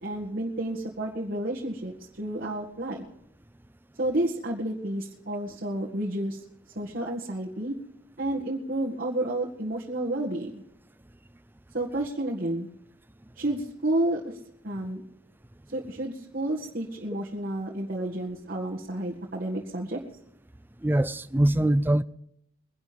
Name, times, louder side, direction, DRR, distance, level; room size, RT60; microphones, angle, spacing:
voice 1, 0.0-3.0 4.0-6.4 6.8-7.8 8.2-10.6 11.7-12.7 13.4-14.4 14.6-15.0 15.7-20.0, right 1 dB, 45° right, 2.0 m, -30 dB
voice 2, 20.8-22.0, right 1 dB, 10° right, 0.4 m, -22 dB
23.0 x 11.5 x 3.5 m
head